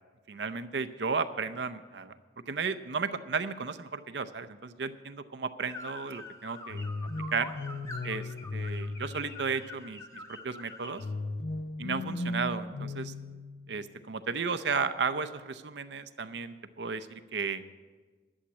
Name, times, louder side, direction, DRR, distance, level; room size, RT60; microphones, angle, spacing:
voice 1, 0.3-2.1 2.5-6.8 7.3-7.5 8.0-11.0 11.8-13.1 13.7-17.6, right 5 dB, 70° right, 11 dB, 0.6 m, -34 dB
sound 1, 5.7-11.0, left 2 dB, 15° left, 1.0 m, -45 dB
sound 2, 6.7-9.8 11.0-13.9, left 2 dB, 55° left, 0.6 m, -37 dB
11.5 x 7.3 x 8.6 m, 1.3 s
head